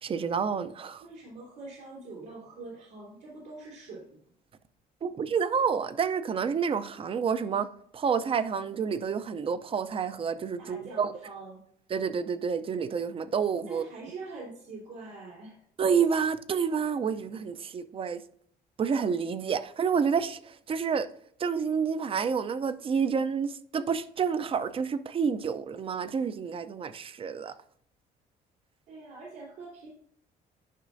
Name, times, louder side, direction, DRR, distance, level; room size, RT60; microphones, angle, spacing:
voice 1, 0.0-1.0 5.0-7.7 7.9-11.1 11.9-13.9 15.8-18.2 18.8-21.1 21.4-27.6, right 6 dB, 35° right, 0.5 m, -29 dB
voice 2, 1.0-4.2 10.6-11.6 13.7-15.6 28.9-29.9, right 3 dB, 85° right, 2.8 m, -44 dB
10.0 x 5.4 x 2.6 m
cardioid pair, 110°, 17 cm